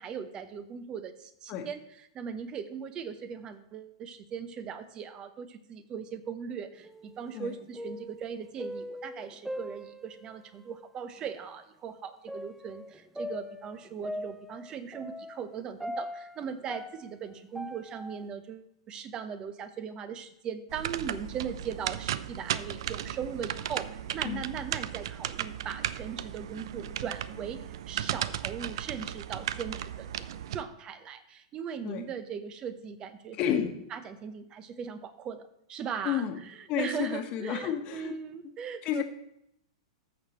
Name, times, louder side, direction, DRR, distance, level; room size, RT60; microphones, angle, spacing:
voice 1, 0.0-1.8 2.1-33.4 33.9-39.0, right 7 dB, 30° right, 11 dB, 0.9 m, -39 dB
sound 1, 6.8-7.4 7.6-10.4 11.2-11.3 12.3-18.3, left 1 dB, 5° right, 0.7 m, -41 dB
sound 2, 20.7-30.6, right 11 dB, 65° right, 0.4 m, -36 dB
voice 2, 33.3-33.7 36.0-36.4 36.7-38.1 38.8-39.0, left 10 dB, 40° left, 5 dB, 1.3 m, -31 dB
14.0 x 6.6 x 3.1 m, 0.78 s
hypercardioid pair, 105°, 3 cm